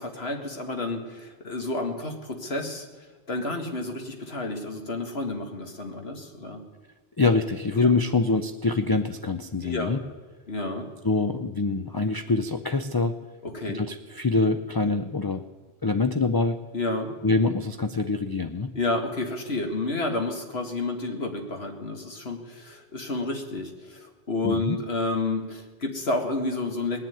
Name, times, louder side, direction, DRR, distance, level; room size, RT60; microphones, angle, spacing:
voice 1, 0.0-2.9 3.3-6.6 7.8-7.9 9.6-9.9 10.5-10.9 13.4-13.8 16.7-17.1 18.7-27.0, left 2 dB, 65° left, 3 dB, 2.0 m, -30 dB
voice 2, 7.2-10.0 11.0-13.1 13.7-15.4 15.8-16.6 17.2-18.7 24.4-24.8, left 3 dB, 35° left, 8 dB, 0.4 m, -25 dB
20.0 x 7.4 x 9.3 m, 1.3 s
omnidirectional pair, 1.2 m